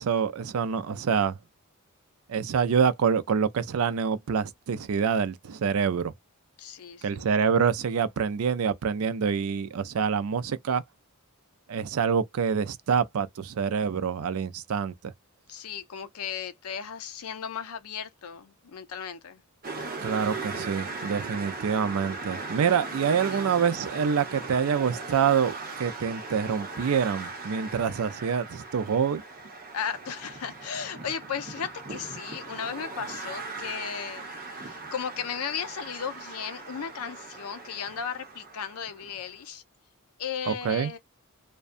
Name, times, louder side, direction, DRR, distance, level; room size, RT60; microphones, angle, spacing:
voice 1, 0.0-1.4 2.3-6.1 7.0-10.8 11.7-15.1 20.0-29.2 40.5-40.9, right 6 dB, 70° right, 0.4 m, -26 dB
voice 2, 6.6-7.3 15.5-19.4 23.3-23.5 29.7-34.3 34.5-39.6 40.2-41.0, left 7 dB, 80° left, 0.5 m, -35 dB
sound 1, 19.6-39.2, right 3 dB, 40° right, 0.8 m, -39 dB
2.6 x 2.2 x 2.4 m
head